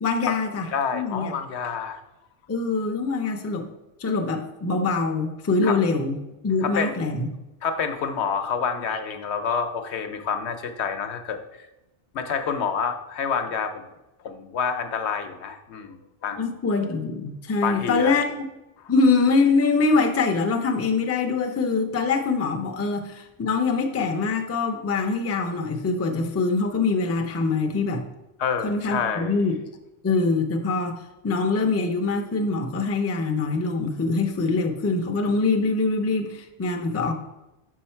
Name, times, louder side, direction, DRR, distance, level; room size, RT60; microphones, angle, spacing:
voice 1, 0.0-0.7 0.9-1.3 2.5-3.7 4.0-6.2 6.4-7.3 16.4-18.5 18.9-28.0 28.6-29.5 30.0-37.1, left 3 dB, 25° left, 4 dB, 0.3 m, -24 dB
voice 2, 0.7-2.0 5.6-5.8 6.6-6.9 7.6-11.7 12.1-13.9 14.2-16.4 17.6-18.2 18.8-18.9 28.4-29.4, left 6 dB, 80° left, 7 dB, 0.9 m, -28 dB
6.2 x 4.6 x 4.4 m, 0.98 s
omnidirectional pair, 1.1 m